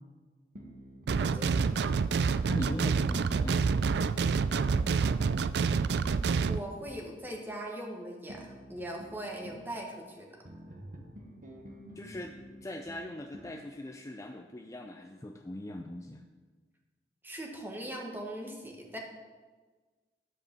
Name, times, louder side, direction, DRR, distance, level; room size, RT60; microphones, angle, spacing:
sound 1, 0.6-2.0 2.7-5.9 8.3-9.7 10.4-13.6, equal, 50° right, 1.2 m, -49 dB
voice 1, 1.1-1.9 6.5-10.4 17.2-19.0, right 1 dB, 10° right, 0 dB, 1.5 m, -40 dB
sound 2, 1.1-6.6, right 5 dB, 65° right, 0.4 m, -27 dB
voice 2, 2.4-4.0 12.0-16.2, left 1 dB, 20° left, 4 dB, 0.5 m, -40 dB
11.0 x 5.1 x 7.0 m, 1.4 s
head